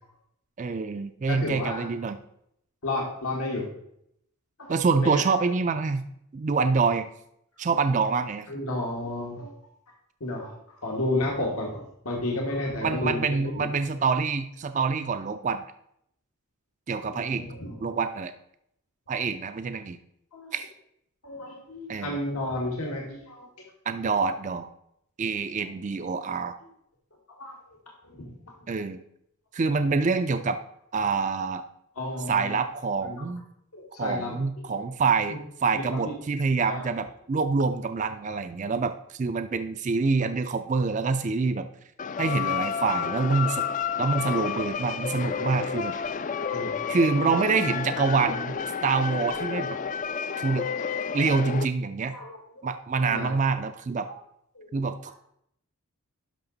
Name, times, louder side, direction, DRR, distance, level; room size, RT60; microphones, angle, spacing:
voice 1, 0.6-2.2 4.7-6.1 6.3-7.1 7.6-8.5 12.8-15.6 16.9-17.5 17.8-18.3 19.1-20.0 20.5-20.7 21.9-22.2 23.9-24.7 25.2-26.6 28.7-29.0 29.5-30.6 30.9-31.6 32.3-33.4 34.0-41.7 42.2-43.6 44.0-46.0 46.9-48.6 48.8-49.8 50.4-50.7 51.1-52.1 52.6-54.1 54.7-55.1, right 4 dB, 35° right, 10 dB, 0.4 m, -26 dB
voice 2, 1.3-1.9 2.8-3.6 4.6-5.2 8.5-9.5 10.2-13.7 17.1-17.8 19.1-19.4 20.3-20.6 21.2-23.5 27.4-27.6 28.0-28.3 32.0-32.6 33.0-33.3 33.7-34.4 35.3-35.4 35.7-36.1 36.7-36.9 46.5-46.9 52.1-52.6 53.1-53.3 54.5-54.8, left 2 dB, 90° left, -1 dB, 1.8 m, -32 dB
sound 1, 42.0-51.7, left 7 dB, 35° left, 0.3 m, -30 dB
11.5 x 5.8 x 3.9 m, 0.74 s
head